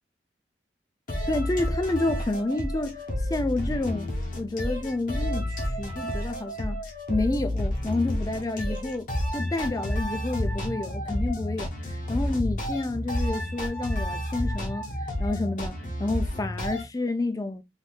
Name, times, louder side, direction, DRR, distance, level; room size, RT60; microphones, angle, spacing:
sound 1, 1.1-16.8, left 1 dB, 45° left, 0.9 m, -30 dB
voice 1, 1.3-3.0 3.3-4.1 4.4-6.8 7.1-14.9 15.2-17.6, left 2 dB, 20° left, 0.4 m, -29 dB
3.6 x 2.7 x 2.3 m
head